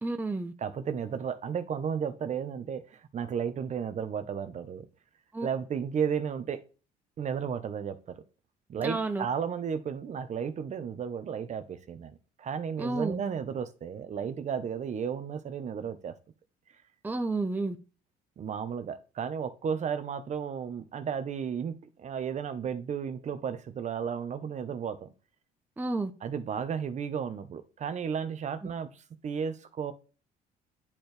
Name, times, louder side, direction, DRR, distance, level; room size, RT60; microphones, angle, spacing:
voice 1, 0.0-0.5 5.3-5.5 8.8-9.3 12.8-13.2 17.0-17.8 25.8-26.1, right 2 dB, 10° right, 0.7 m, -31 dB
voice 2, 0.6-4.9 5.4-6.6 7.2-8.2 8.7-16.2 18.4-25.1 26.2-29.9, right 7 dB, 45° right, 1.0 m, -33 dB
10.0 x 4.5 x 3.3 m
cardioid pair, 110°, 17 cm